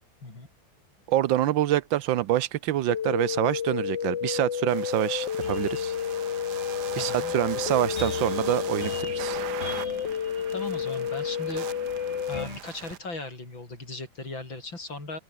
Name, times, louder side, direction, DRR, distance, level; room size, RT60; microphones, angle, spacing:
voice 1, 1.1-5.9 6.9-9.4, right 13 dB, 80° right, 1.5 m, -26 dB
sound 1, 2.9-12.4, left 8 dB, 70° left, 2.1 m, -30 dB
sound 2, 4.7-13.0, right 9 dB, 65° right, 1.6 m, -41 dB
sound 3, 5.4-12.6, left 2 dB, 35° left, 5.2 m, -43 dB
voice 2, 7.0-7.3 10.5-11.7 12.3-15.2, left 2 dB, 85° left, 7.3 m, -38 dB
open air
omnidirectional pair, 2.0 m